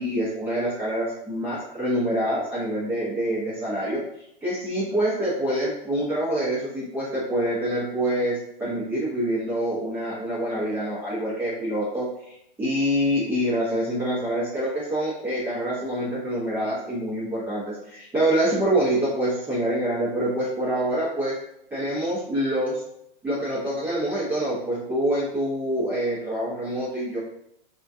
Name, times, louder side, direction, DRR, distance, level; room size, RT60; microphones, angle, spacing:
voice 1, 0.0-4.0 4.4-21.4 21.7-22.8 23.2-27.2, right 1 dB, 5° right, -9 dB, 0.7 m, -26 dB
4.4 x 2.4 x 2.6 m, 0.77 s
hypercardioid pair, 145°, 30 cm